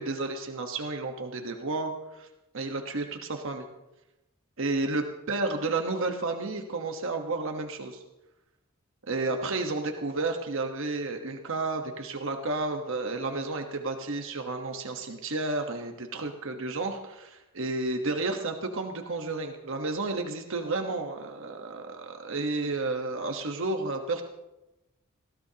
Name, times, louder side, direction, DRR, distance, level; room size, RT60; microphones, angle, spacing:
voice 1, 0.0-2.3 2.5-3.6 4.6-8.0 9.1-24.2, right 3 dB, 65° right, 4 dB, 1.2 m, -31 dB
20.0 x 15.5 x 2.9 m, 0.98 s
head